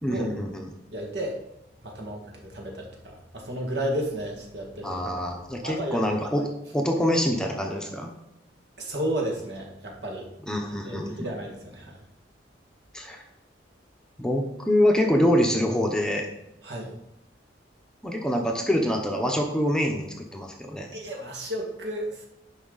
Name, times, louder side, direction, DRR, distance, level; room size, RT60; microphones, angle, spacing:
voice 1, 0.0-0.7 4.8-8.1 10.5-11.3 12.9-13.2 14.2-16.3 18.0-20.9, equal, 5° left, 1 dB, 0.8 m, -25 dB
voice 2, 0.9-1.4 1.8-5.0 5.6-6.0 8.8-10.3 10.8-12.0 16.6-17.0 20.9-22.3, right 1 dB, 65° right, 0 dB, 2.0 m, -32 dB
10.0 x 5.6 x 4.0 m, 0.87 s
head